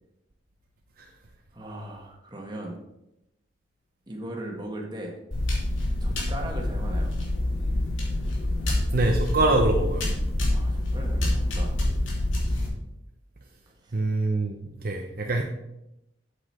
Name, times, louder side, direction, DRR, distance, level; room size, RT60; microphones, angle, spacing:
voice 1, 1.5-2.8 4.1-5.2 6.0-7.1 10.5-11.7 13.8-14.0, right 1 dB, 20° right, 0 dB, 1.7 m, -38 dB
sound 1, 5.3-12.7, left 1 dB, 85° left, 2.9 m, -26 dB
voice 2, 8.9-10.0 13.9-14.6 14.8-15.4, right 2 dB, 50° right, 1 dB, 0.8 m, -24 dB
8.2 x 7.9 x 4.4 m, 0.87 s
head